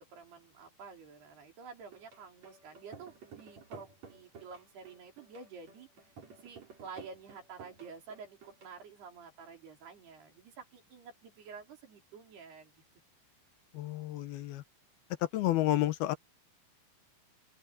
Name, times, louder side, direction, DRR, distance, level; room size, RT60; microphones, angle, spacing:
voice 1, 0.0-5.9 6.4-12.8, right 5 dB, 80° right, 6.6 m, -50 dB
Mridangam-Khanda, 1.9-8.7, right 4 dB, 45° right, 5.6 m, -53 dB
voice 2, 13.8-14.6 15.3-16.2, left 15 dB, 75° left, 2.8 m, -30 dB
open air
omnidirectional pair, 4.6 m